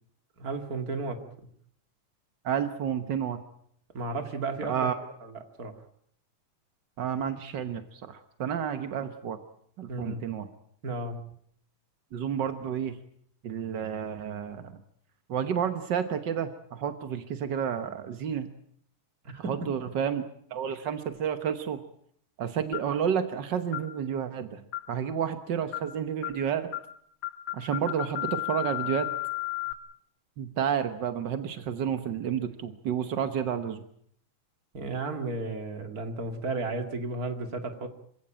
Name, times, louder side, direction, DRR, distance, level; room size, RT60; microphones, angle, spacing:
voice 1, 0.4-1.2 3.9-4.9 5.2-5.7 9.9-10.2 10.8-11.2 19.2-19.6 34.7-37.9, right 3 dB, 30° right, 6 dB, 2.3 m, -33 dB
voice 2, 2.4-3.4 4.7-5.0 7.0-9.4 9.8-10.5 12.1-13.0 13.4-14.7 15.3-18.5 19.5-20.2 20.5-21.8 22.4-24.6 24.9-26.7 27.5-29.1 30.4-33.8, right 8 dB, 65° right, 9 dB, 1.1 m, -30 dB
sound 1, 22.7-23.0 23.7-23.9 24.7-25.0 25.7-25.9 26.2-26.4 26.7-26.9 27.2-29.7, left 18 dB, 60° left, 1.8 m, -34 dB
26.5 x 16.5 x 8.8 m, 0.66 s
omnidirectional pair, 3.6 m